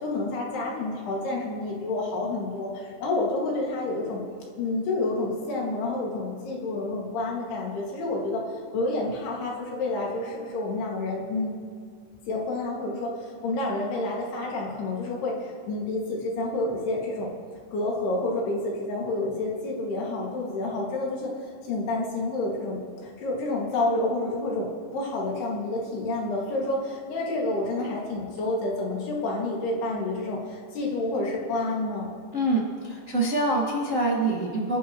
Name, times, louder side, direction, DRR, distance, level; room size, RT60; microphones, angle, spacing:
voice 1, 0.0-4.2 4.6-8.4 8.7-11.6 12.3-15.4 15.7-17.3 17.7-21.3 21.7-24.7 24.9-32.1, left 2 dB, 70° left, -2 dB, 4.1 m, -29 dB
voice 2, 32.3-34.8, right 2 dB, 70° right, -4 dB, 0.7 m, -25 dB
29.0 x 10.5 x 3.1 m, 2.1 s
omnidirectional pair, 4.9 m